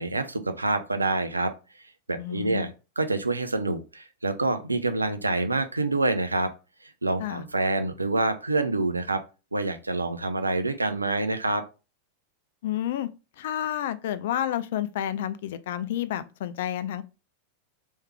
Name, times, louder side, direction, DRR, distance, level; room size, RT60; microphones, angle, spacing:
voice 1, 0.0-1.5 2.1-6.5 6.8-9.2 9.5-11.6, right 2 dB, 80° right, 0.4 m, -27 dB
voice 2, 2.2-2.7 7.2-7.4 12.6-13.1 13.4-17.0, left 11 dB, 55° left, 0.3 m, -30 dB
3.2 x 3.2 x 3.0 m
figure-of-eight pair, 90°, 0 cm